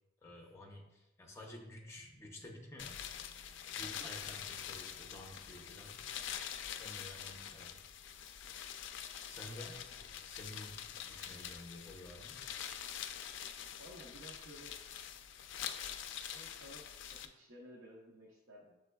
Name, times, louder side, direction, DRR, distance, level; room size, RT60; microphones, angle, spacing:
voice 1, 0.2-3.0 3.7-6.1 6.8-7.8 9.3-9.8 10.1-12.4, left 1 dB, 15° left, 0 dB, 0.6 m, -51 dB
sound 1, 2.0-11.1 11.4-11.5, right 3 dB, 45° right, 0.4 m, -73 dB
sound 2, 2.8-17.3, left 9 dB, 70° left, 0.3 m, -45 dB
voice 2, 3.8-4.3 9.5-9.7 13.8-14.8 16.3-18.8, equal, 80° right, -3 dB, 0.7 m, -55 dB
6.8 x 3.4 x 2.2 m, 0.99 s
head